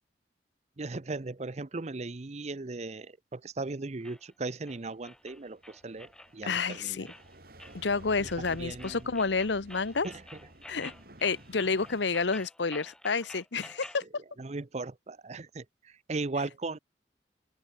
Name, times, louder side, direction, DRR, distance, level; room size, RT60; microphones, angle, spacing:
voice 1, 0.8-7.1 8.2-9.2 10.0-10.4 14.4-16.8, right 3 dB, 40° right, 0.7 m, -38 dB
sound 1, 4.0-14.0, left 1 dB, 5° left, 1.3 m, -50 dB
sound 2, 4.9-12.5, right 1 dB, 55° right, 7.8 m, -53 dB
voice 2, 6.4-7.1 7.7-10.1 10.7-10.9 11.2-14.0, left 4 dB, 80° left, 1.0 m, -29 dB
open air
head